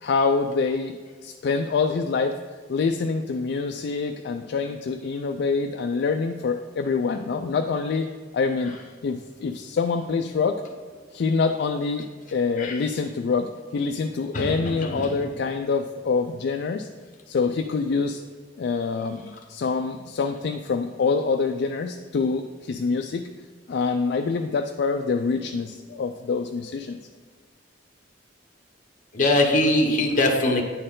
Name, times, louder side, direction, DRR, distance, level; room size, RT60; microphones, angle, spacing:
voice 1, 0.0-2.4 2.7-8.1 8.3-8.7 9.0-10.6 11.1-16.9 17.3-18.2 18.6-23.3 23.7-27.0, left 4 dB, 60° left, 5 dB, 0.3 m, -26 dB
voice 2, 14.3-15.1 29.1-30.6, left 1 dB, 45° left, 2 dB, 1.0 m, -22 dB
9.7 x 4.3 x 3.8 m, 1.6 s
head